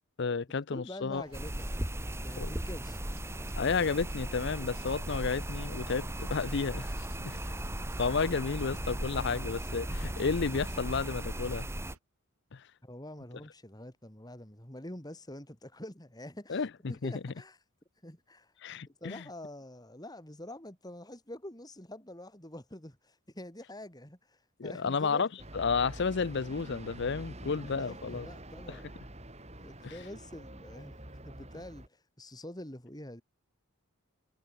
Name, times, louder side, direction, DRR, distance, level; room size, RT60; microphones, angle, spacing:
voice 1, 0.2-1.2 2.4-2.5 3.6-7.4 8.0-11.7 12.5-12.6 16.5-17.1 18.6-19.2 24.6-25.3 25.5-28.3 28.7-28.8 29.8-29.9, left 5 dB, 50° left, 0.6 m, -32 dB
voice 2, 0.7-1.8 2.2-3.0 12.8-16.6 16.9-17.6 18.0-18.5 18.9-25.2 27.4-28.9 29.6-33.2, left 1 dB, 15° left, 3.0 m, -46 dB
sound 1, 1.1-12.0, right 2 dB, 85° right, 5.3 m, -55 dB
sound 2, 1.3-12.0, right 1 dB, 10° right, 2.2 m, -37 dB
sound 3, 25.4-31.9, right 1 dB, 30° right, 4.8 m, -46 dB
head